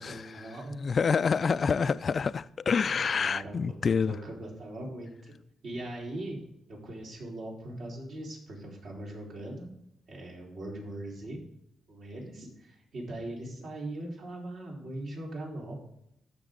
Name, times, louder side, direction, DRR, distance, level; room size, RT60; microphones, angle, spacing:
voice 1, 0.0-0.9 3.2-5.3 5.6-6.4 6.7-9.7 10.1-11.4 11.9-15.8, right 1 dB, 60° right, 4.0 m, -40 dB
voice 2, 0.8-4.1, left 5 dB, 40° left, 0.3 m, -27 dB
14.0 x 6.1 x 3.8 m
cardioid pair, 125°, 0 cm